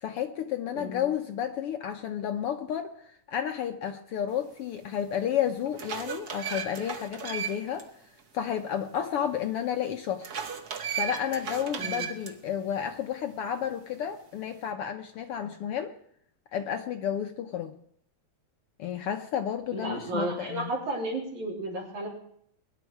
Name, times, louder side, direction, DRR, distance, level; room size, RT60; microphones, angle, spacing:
voice 1, 0.0-7.9 8.3-10.3 10.9-15.9 16.5-17.7 18.8-20.7, left 9 dB, 70° left, 1.4 m, -31 dB
sound 1, 4.8-4.9 5.5-7.8 8.2-8.3 10.2-12.3, right 7 dB, 60° right, 1.0 m, -35 dB
voice 2, 11.8-12.1 19.7-22.1, right 1 dB, 85° right, 5.0 m, -33 dB
22.0 x 11.0 x 4.6 m
omnidirectional pair, 3.3 m